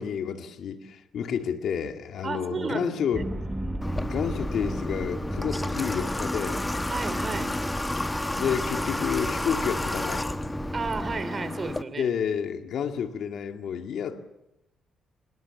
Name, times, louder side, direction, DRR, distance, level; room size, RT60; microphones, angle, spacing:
voice 1, 0.0-3.3 4.0-6.6 8.3-10.3 12.0-14.3, left 7 dB, 65° left, 5 dB, 2.1 m, -30 dB
voice 2, 2.2-3.2 6.9-7.5 10.7-12.1, right 4 dB, 35° right, 14 dB, 2.9 m, -32 dB
sound 1, 3.1-11.2, right 1 dB, 10° right, 1.2 m, -35 dB
Water / Water tap faucet, 3.8-11.8, left 1 dB, 15° left, 1.0 m, -31 dB
26.0 x 21.5 x 7.2 m, 0.87 s
cardioid pair, 90°, 0 cm